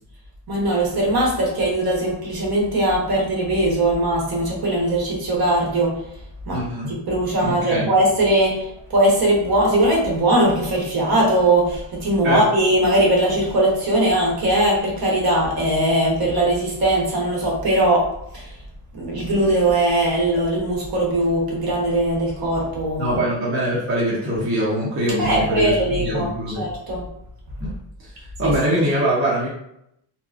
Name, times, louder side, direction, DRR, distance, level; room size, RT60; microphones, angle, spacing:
voice 1, 0.5-6.0 6.5-6.6 6.9-18.5 18.9-23.2 25.2-26.3 26.6-27.1 28.4-28.5, right 1 dB, 55° right, -2 dB, 1.0 m, -20 dB
voice 2, 6.5-6.9 7.4-7.9 12.2-12.4 23.0-26.7 27.6-27.7 28.4-29.5, right 1 dB, 30° right, -6 dB, 0.7 m, -23 dB
2.8 x 2.4 x 2.4 m, 0.77 s
wide cardioid pair, 170°, 44 cm